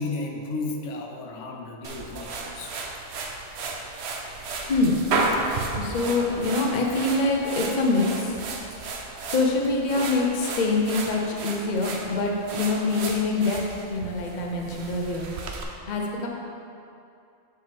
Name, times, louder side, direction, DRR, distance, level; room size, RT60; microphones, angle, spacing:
voice 1, 0.0-2.7 5.3-5.5, left 3 dB, 85° left, 2 dB, 1.0 m, -33 dB
sound 1, 1.8-15.6, right 3 dB, 65° right, 0.9 m, -33 dB
voice 2, 4.7-5.0 5.7-8.4 9.3-13.6 13.9-16.3, left 3 dB, 45° left, 0 dB, 0.9 m, -25 dB
7.0 x 6.8 x 3.5 m, 2.6 s
omnidirectional pair, 1.2 m